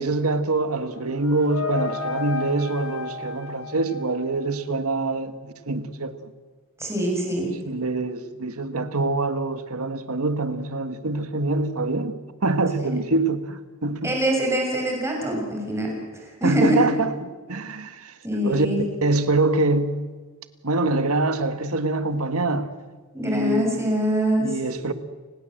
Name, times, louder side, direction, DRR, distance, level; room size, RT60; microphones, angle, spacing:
voice 1, 0.0-6.1 7.6-14.1 16.4-18.1 18.4-20.0 20.6-22.7 23.2-23.8 24.4-24.9, right 2 dB, 70° right, 1.6 m, -25 dB
sound 1, 0.7-4.7, left 4 dB, 70° left, 4.4 m, -33 dB
voice 2, 6.8-7.5 12.8-12.9 14.0-16.8 18.2-18.8 23.1-24.6, equal, 15° right, 7.3 m, -24 dB
30.0 x 19.5 x 7.9 m
head